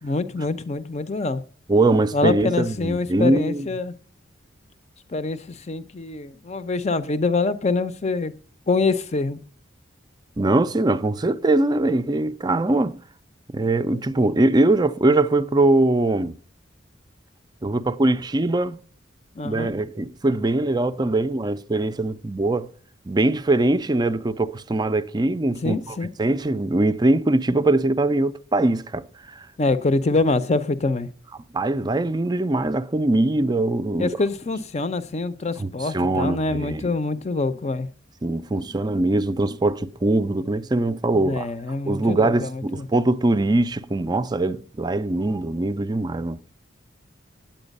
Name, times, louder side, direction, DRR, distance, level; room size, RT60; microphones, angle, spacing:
voice 1, 0.0-1.4 2.1-3.9 5.1-8.3 8.7-9.4 19.4-19.7 25.6-26.1 29.6-31.1 34.0-37.9 41.1-42.9, left 3 dB, 35° left, 0.6 m, -25 dB
voice 2, 1.7-3.7 10.4-13.0 13.5-16.4 17.6-18.8 19.4-22.7 23.1-29.5 31.5-34.2 35.6-36.8 38.2-41.5 41.8-46.4, right 2 dB, 20° right, 0.4 m, -22 dB
9.1 x 8.7 x 5.3 m
head